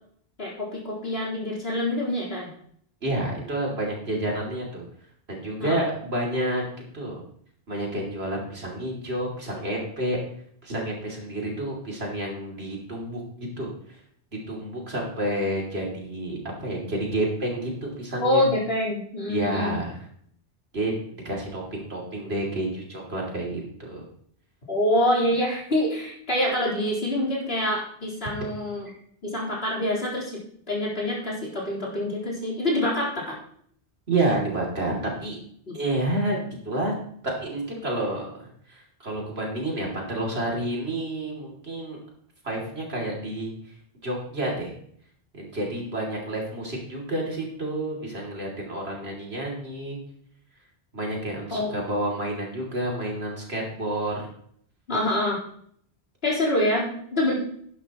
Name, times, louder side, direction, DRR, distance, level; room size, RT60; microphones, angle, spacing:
voice 1, 0.4-2.5 5.6-5.8 18.2-19.7 24.7-28.9 29.2-30.4 30.7-33.4 35.7-35.8 51.5-51.7 54.9-55.4 56.2-57.3, left 1 dB, 75° left, -5 dB, 4.2 m, -26 dB
voice 2, 3.0-4.8 5.3-6.6 6.9-7.2 7.7-10.2 10.6-14.0 14.5-18.4 19.3-20.1 20.7-20.9 21.2-24.0 34.1-35.4 35.7-36.9 37.2-42.0 42.4-43.5 44.0-44.7 45.3-50.0 50.9-54.3, right 1 dB, 80° right, -1 dB, 3.2 m, -29 dB
11.5 x 10.5 x 3.0 m, 0.63 s
omnidirectional pair, 1.0 m